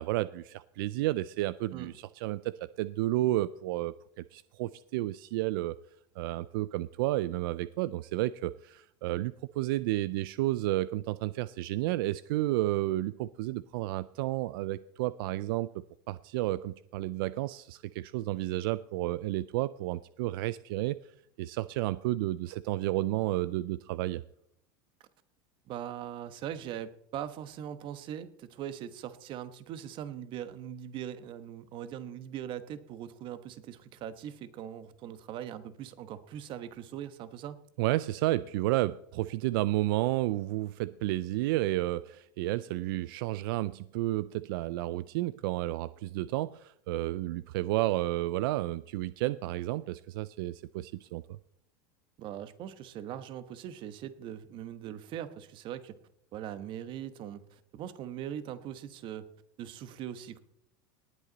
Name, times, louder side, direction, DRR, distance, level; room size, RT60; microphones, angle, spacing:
voice 1, 0.0-5.8 6.2-21.0 21.4-24.2 37.8-51.4, right 16 dB, 75° right, 17 dB, 0.4 m, -31 dB
voice 2, 25.7-37.6 52.2-55.9 56.3-59.3 59.6-60.4, right 10 dB, 45° right, 12 dB, 1.1 m, -41 dB
19.0 x 8.2 x 4.0 m, 0.71 s
supercardioid pair, 135°, 12 cm